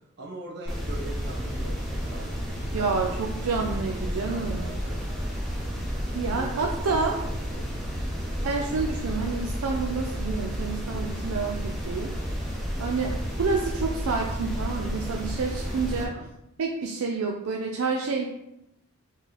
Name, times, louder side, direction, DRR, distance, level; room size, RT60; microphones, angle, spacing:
voice 1, 0.2-3.5 4.3-5.4 6.3-7.8 8.3-8.5 13.1-13.4 16.0-16.3, right 2 dB, 50° right, -2 dB, 0.9 m, -42 dB
sound 1, 0.7-16.0, equal, ahead, 0.8 m, -31 dB
voice 2, 2.7-4.7 6.1-7.2 8.4-12.1 12.8-16.1 16.6-18.3, right 4 dB, 70° right, 1 dB, 0.4 m, -29 dB
4.5 x 2.9 x 3.9 m, 0.83 s
head